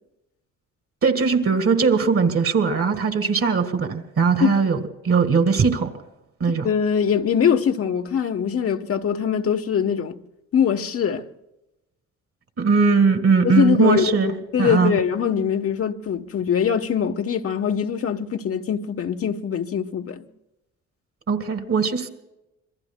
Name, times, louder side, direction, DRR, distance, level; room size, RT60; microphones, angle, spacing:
voice 1, 1.0-5.9 6.4-6.7 12.6-14.3 14.6-15.0 21.3-22.1, right 5 dB, 50° right, 2.0 m, -20 dB
voice 2, 6.6-10.2 10.5-11.2 13.4-20.3, left 7 dB, 50° left, 1.0 m, -22 dB
27.0 x 22.5 x 2.2 m
cardioid pair, 90°, 30 cm